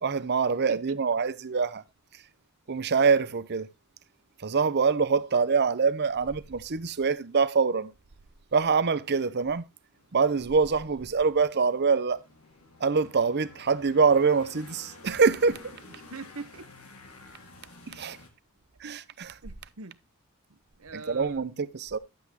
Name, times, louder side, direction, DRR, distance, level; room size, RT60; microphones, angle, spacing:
voice 1, 0.0-1.8 2.7-3.7 4.4-7.9 8.5-9.6 10.1-12.2 12.8-15.6 17.9-18.2 18.8-19.3 20.9-22.0, right 5 dB, 50° right, 0.7 m, -25 dB
sound 1, 9.9-18.3, left 3 dB, 75° left, 2.2 m, -51 dB
voice 2, 15.8-16.7 18.8-19.0 19.4-19.9 20.5-21.4, right 4 dB, 70° right, 1.0 m, -43 dB
11.5 x 8.3 x 2.9 m
head